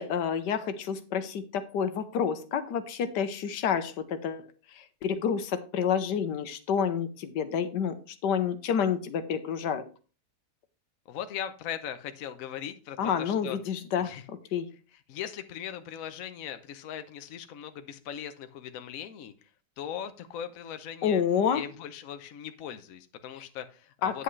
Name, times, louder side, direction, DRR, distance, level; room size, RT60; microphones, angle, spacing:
voice 1, 0.0-7.9 8.2-9.8 13.0-14.7 21.0-21.6 24.0-24.2, left 7 dB, 85° left, 9 dB, 1.5 m, -29 dB
voice 2, 11.1-13.6 14.0-14.2 15.1-19.3 19.8-21.2 21.5-24.2, left 9 dB, 60° left, 9 dB, 1.1 m, -39 dB
9.4 x 8.1 x 3.2 m, 0.35 s
omnidirectional pair, 1.8 m